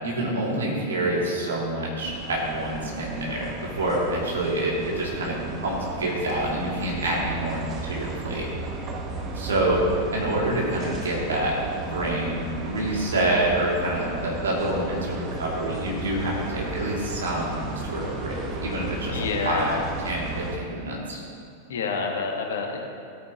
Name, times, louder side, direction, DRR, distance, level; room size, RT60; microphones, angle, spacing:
voice 1, 0.0-8.5 9.3-9.8 10.1-11.6 11.9-19.8 20.0-21.2, right 1 dB, 65° right, -4 dB, 2.7 m, -27 dB
sound 1, 2.0-20.6, right 3 dB, 30° right, 1.4 m, -34 dB
voice 2, 19.1-19.8 21.7-22.8, left 4 dB, 65° left, 1 dB, 1.4 m, -28 dB
16.5 x 9.0 x 3.1 m, 2.4 s
figure-of-eight pair, 90°, 0 cm